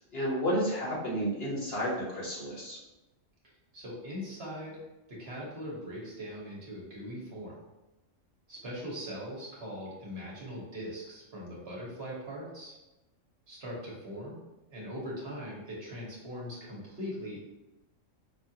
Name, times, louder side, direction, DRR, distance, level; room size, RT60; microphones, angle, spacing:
voice 1, 0.1-2.8, equal, 50° left, -6 dB, 1.5 m, -31 dB
voice 2, 3.7-4.8 5.1-7.6 8.5-12.7 13.5-14.4 14.7-17.4, equal, 55° right, -5 dB, 1.2 m, -40 dB
5.5 x 2.4 x 2.8 m, 1.0 s
omnidirectional pair, 1.3 m